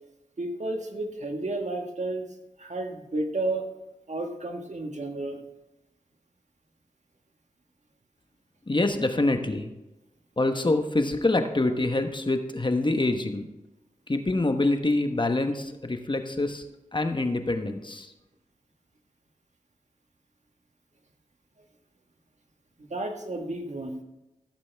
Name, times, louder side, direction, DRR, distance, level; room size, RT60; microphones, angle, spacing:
voice 1, 0.4-2.3 2.6-3.7 4.1-5.4 22.8-24.0, right 2 dB, 60° right, 3 dB, 1.5 m, -32 dB
voice 2, 8.7-9.7 10.4-13.5 14.1-16.6 16.9-18.1, left 2 dB, 35° left, 6 dB, 1.1 m, -25 dB
14.5 x 7.9 x 3.5 m, 0.98 s
cardioid pair, 45°, 14 cm